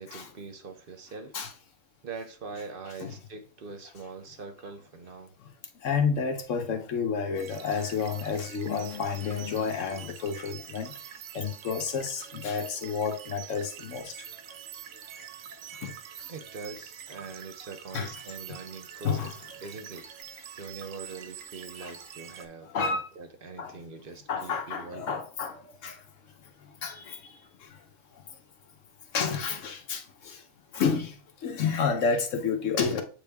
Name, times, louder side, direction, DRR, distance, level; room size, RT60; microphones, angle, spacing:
voice 1, 0.0-1.4 2.0-5.3 16.3-19.3 19.6-20.1 20.6-25.2, right 4 dB, 50° right, 0.8 m, -43 dB
voice 2, 5.8-10.9 11.3-14.1 15.8-15.9 17.9-18.1 19.0-19.3 21.8-21.9 22.7-23.0 23.6-23.7 24.3-25.6 25.8-25.9 26.8-27.2 29.1-30.4 30.7-31.1 31.4-33.0, left 5 dB, 75° left, 1.3 m, -30 dB
sound 1, 7.4-22.5, right 9 dB, 90° right, 1.1 m, -45 dB
7.8 x 3.4 x 3.5 m
omnidirectional pair, 1.3 m